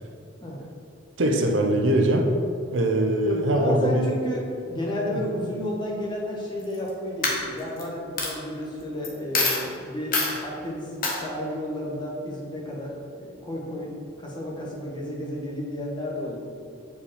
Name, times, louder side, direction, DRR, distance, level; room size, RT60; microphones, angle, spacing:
voice 1, 1.2-2.3 2.7-4.1, right 1 dB, 75° right, 2 dB, 0.8 m, -22 dB
voice 2, 3.2-13.9 14.2-16.4, left 1 dB, 25° left, -4 dB, 1.3 m, -32 dB
Coin (dropping), 6.6-6.9 7.2-7.8 8.2-8.3 9.0-9.1 9.3-9.6 10.1-10.3 11.0-11.2, left 3 dB, 50° left, 1.2 m, -24 dB
6.9 x 5.1 x 4.3 m, 2.5 s
head